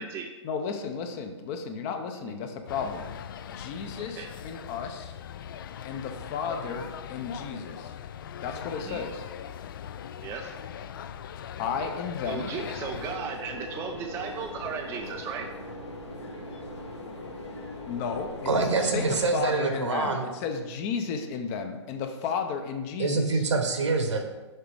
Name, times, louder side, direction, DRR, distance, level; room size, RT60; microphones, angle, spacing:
voice 1, 0.4-3.1 3.5-5.1 5.8-7.9 8.4-9.2 11.6-12.5 16.6-16.7 17.9-23.5, left 6 dB, 30° left, 6 dB, 0.7 m, -33 dB
sound 1, 2.7-13.2, left 9 dB, 45° left, 0.4 m, -40 dB
voice 2, 4.0-4.3 6.7-6.8 8.8-9.0 10.2-10.5 12.2-15.5, right 6 dB, 15° right, 2 dB, 0.4 m, -36 dB
sound 2, 12.5-19.5, left 2 dB, 65° left, 1.6 m, -40 dB
voice 3, 18.4-20.2 23.0-24.2, right 3 dB, 70° right, 4 dB, 1.3 m, -25 dB
6.7 x 5.0 x 4.8 m, 1.2 s
figure-of-eight pair, 125°, 15 cm